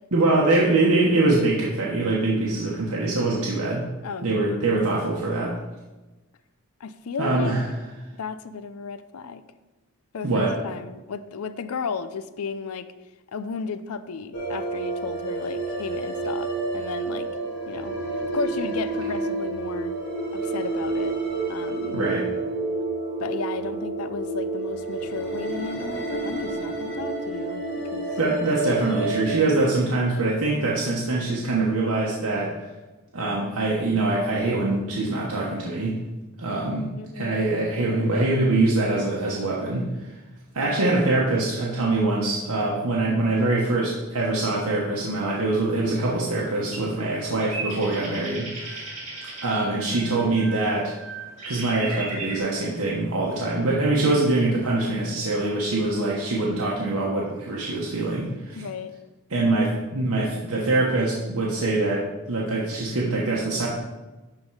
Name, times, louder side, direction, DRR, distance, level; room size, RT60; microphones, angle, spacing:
voice 1, 0.1-3.8 4.2-5.5 7.2-7.6 10.2-10.5 21.9-22.2 28.2-32.5 33.1-35.9 36.4-36.9 37.1-40.1 40.5-48.9 49.4-50.9 51.5-58.6 59.3-63.7, right 2 dB, 85° right, -4 dB, 1.2 m, -24 dB
voice 2, 6.8-7.5 8.2-9.4 10.1-12.9 13.3-17.3 17.7-17.9 18.3-19.9 20.3-21.2 21.5-22.0 23.2-27.6 27.9-28.1 37.0-37.4 40.6-40.9 58.6-58.9, left 5 dB, 80° left, 13 dB, 0.5 m, -34 dB
sound 1, 14.3-29.3, right 2 dB, 55° left, 1.8 m, -29 dB
sound 2, 45.5-52.4, right 3 dB, 30° right, 2.6 m, -37 dB
11.5 x 3.8 x 4.7 m, 1.1 s
head